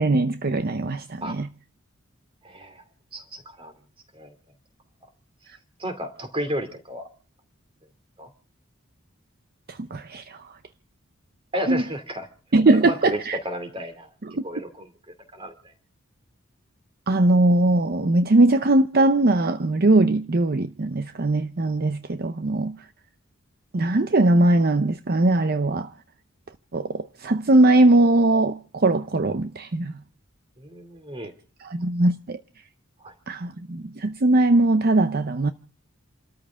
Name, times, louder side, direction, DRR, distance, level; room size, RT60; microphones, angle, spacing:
voice 1, 0.0-1.5 9.7-10.4 11.7-11.8 12.5-13.4 14.2-14.4 17.1-22.8 23.7-25.9 26.7-29.9 31.6-32.4 33.3-35.5, right 2 dB, 45° right, 0.7 m, -20 dB
voice 2, 2.4-2.8 3.1-3.7 4.1-4.3 5.8-7.1 8.2-8.3 11.5-12.3 12.7-13.2 13.4-14.1 14.4-14.9 15.3-15.7 30.6-31.3 33.0-33.1, equal, 25° right, 2.7 m, -32 dB
28.5 x 13.5 x 3.6 m
head